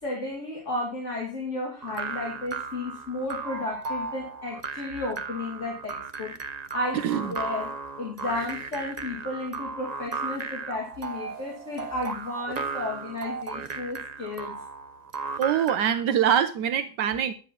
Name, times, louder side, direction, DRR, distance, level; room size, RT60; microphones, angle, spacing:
voice 1, 0.0-6.3 6.7-7.7 8.0-14.5, left 2 dB, 45° left, -2 dB, 3.2 m, -33 dB
sound 1, 1.8-16.0, right 4 dB, 55° right, 0.4 m, -35 dB
voice 2, 15.4-17.3, right 9 dB, 80° right, 10 dB, 1.4 m, -24 dB
11.5 x 9.3 x 5.7 m, 0.37 s
omnidirectional pair, 1.8 m